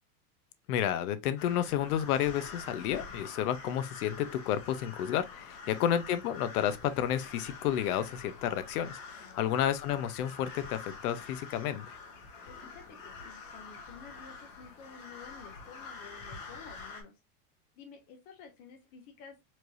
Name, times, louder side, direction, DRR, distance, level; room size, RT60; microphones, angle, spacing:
voice 1, 0.7-11.9, left 10 dB, 75° left, 0.8 m, -31 dB
sound 1, 1.4-17.0, left 4 dB, 50° left, 1.3 m, -47 dB
voice 2, 5.6-6.0 9.1-9.7 12.5-17.1 17.8-19.4, left 6 dB, 20° left, 0.3 m, -52 dB
4.4 x 3.2 x 2.6 m
supercardioid pair, 160°, 45 cm